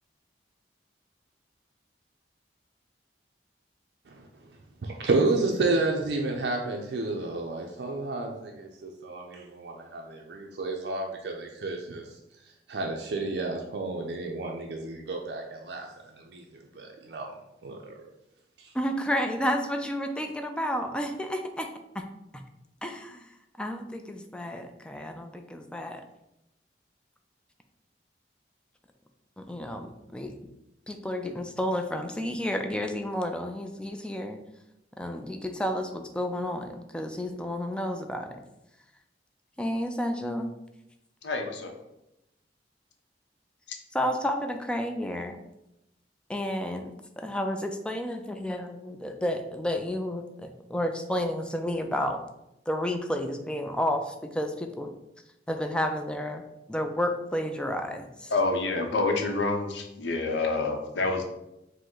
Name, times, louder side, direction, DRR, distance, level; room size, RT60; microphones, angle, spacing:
voice 1, 4.8-12.1 12.7-15.9 16.2-17.3 17.6-17.9 18.6-18.7, right 3 dB, 65° right, 1 dB, 0.4 m, -31 dB
voice 2, 18.7-21.7 21.9-22.1 22.8-23.3 23.6-26.0 29.4-30.4 30.9-34.4 35.0-38.4 39.6-40.5 43.9-45.4 46.3-52.2 52.7-54.9 55.5-58.3, equal, 5° left, 5 dB, 0.3 m, -31 dB
voice 3, 41.2-41.7 58.3-61.2, left 3 dB, 85° left, 3 dB, 0.7 m, -27 dB
5.1 x 2.1 x 3.7 m, 0.88 s
head